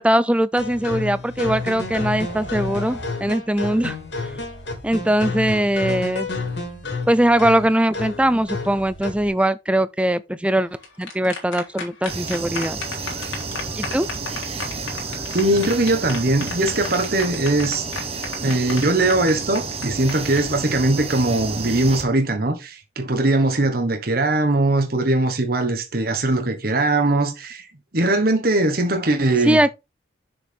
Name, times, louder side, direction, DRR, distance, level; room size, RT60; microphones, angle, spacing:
voice 1, 0.0-4.0 4.8-6.3 7.1-10.7 11.0-12.8 13.8-14.1 29.4-29.7, right 1 dB, 5° right, 0.4 m, -20 dB
sound 1, 0.6-9.3, left 3 dB, 65° left, 2.9 m, -30 dB
sound 2, 10.6-20.4, left 4 dB, 90° left, 3.0 m, -33 dB
sound 3, 12.1-22.0, right 4 dB, 30° right, 1.1 m, -31 dB
voice 2, 15.3-17.8 18.4-27.7 27.9-29.6, right 2 dB, 50° right, 1.3 m, -20 dB
6.7 x 6.0 x 3.5 m
head